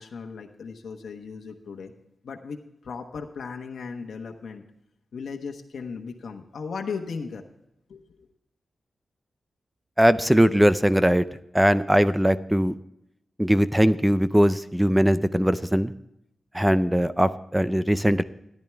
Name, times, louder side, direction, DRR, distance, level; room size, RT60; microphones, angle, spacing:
voice 1, 0.0-1.9 2.2-4.6 5.1-7.4 7.9-8.3, left 5 dB, 75° left, 3 dB, 1.1 m, -36 dB
voice 2, 10.0-11.3 11.5-12.7 13.4-15.9 16.5-18.2, equal, 5° right, 13 dB, 0.4 m, -20 dB
14.0 x 10.5 x 3.4 m, 0.82 s
wide cardioid pair, 150°, 0 cm